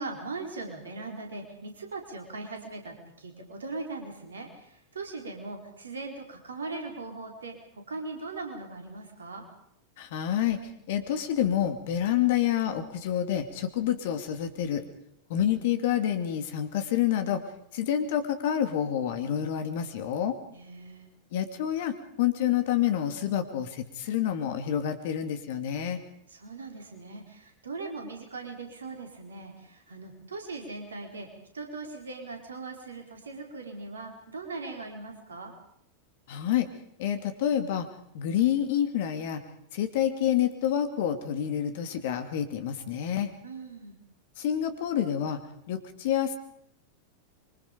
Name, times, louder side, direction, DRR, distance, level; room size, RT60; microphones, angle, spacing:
voice 1, 0.0-9.4 20.5-21.1 26.3-31.3 31.5-35.5 43.4-44.0, right 3 dB, 70° right, 3 dB, 4.3 m, -40 dB
voice 2, 10.0-10.6 10.9-14.8 15.3-17.4 17.7-20.4 21.3-26.0 36.3-36.7 37.0-37.9 38.1-39.4 39.7-43.3 44.4-45.4 45.7-46.4, left 10 dB, 50° left, 8 dB, 2.4 m, -28 dB
25.5 x 24.0 x 5.2 m, 0.74 s
figure-of-eight pair, 90°, 0 cm